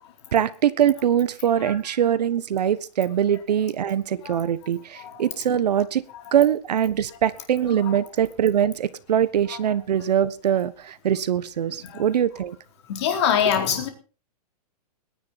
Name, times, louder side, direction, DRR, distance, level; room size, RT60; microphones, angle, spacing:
voice 1, 0.3-6.0 6.3-12.6, right 9 dB, 80° right, 15 dB, 1.3 m, -22 dB
voice 2, 12.9-13.9, left 8 dB, 40° left, 4 dB, 4.0 m, -24 dB
21.5 x 10.5 x 4.2 m, 0.36 s
hypercardioid pair, 175°, 21 cm